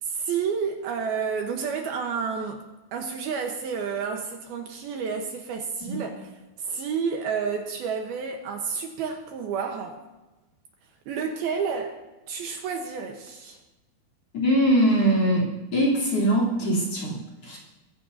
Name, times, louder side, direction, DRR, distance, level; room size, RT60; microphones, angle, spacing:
voice 1, 0.0-2.6 2.9-6.3 6.6-10.0 11.1-12.0 12.3-13.6, right 6 dB, 70° right, 3 dB, 2.8 m, -30 dB
voice 2, 14.3-17.6, right 1 dB, 35° left, -3 dB, 3.9 m, -22 dB
22.5 x 14.5 x 2.8 m, 1.1 s
omnidirectional pair, 4.9 m